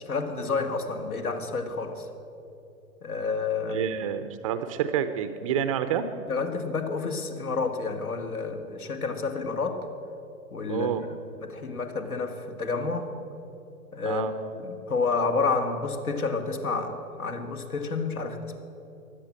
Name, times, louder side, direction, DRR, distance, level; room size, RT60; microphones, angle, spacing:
voice 1, 0.0-2.1 3.0-3.9 6.3-9.8 10.5-13.1 13.9-14.3 14.6-18.6, left 4 dB, 75° left, 7 dB, 2.0 m, -30 dB
voice 2, 3.7-6.1 10.7-11.0 14.0-14.3, right 9 dB, 25° right, 10 dB, 0.5 m, -28 dB
16.0 x 11.5 x 7.6 m, 2.9 s
figure-of-eight pair, 120°, 44 cm